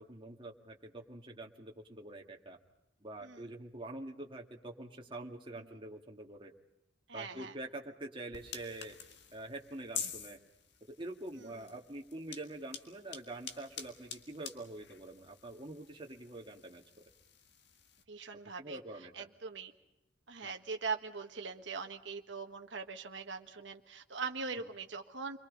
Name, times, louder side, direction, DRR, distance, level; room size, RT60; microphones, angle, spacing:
voice 1, 0.0-2.6 3.0-6.5 7.1-9.0 9.3-10.4 10.9-16.8 18.6-19.3 20.4-20.5 24.5-24.7, right 2 dB, 25° right, 1 dB, 2.1 m, -46 dB
voice 2, 7.1-7.5 18.1-18.8 19.1-19.7 20.3-25.4, right 4 dB, 70° right, 4 dB, 1.5 m, -41 dB
sound 1, 8.3-18.0, left 7 dB, 65° left, 1.9 m, -48 dB
29.0 x 23.0 x 5.4 m, 0.86 s
head